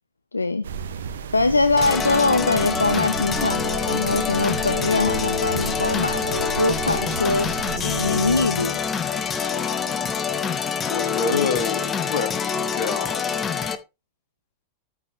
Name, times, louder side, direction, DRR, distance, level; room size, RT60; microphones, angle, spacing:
voice 1, 0.3-0.6 1.3-8.8 11.3-11.5, left 3 dB, 80° left, 0.6 m, -23 dB
sound 1, 0.6-8.4, right 6 dB, 65° right, 1.2 m, -33 dB
sound 2, 1.8-13.8, left 6 dB, 20° left, 1.0 m, -26 dB
voice 2, 10.9-13.2, left 5 dB, 45° left, 2.4 m, -27 dB
13.5 x 5.5 x 3.4 m
figure-of-eight pair, 90°, 0 cm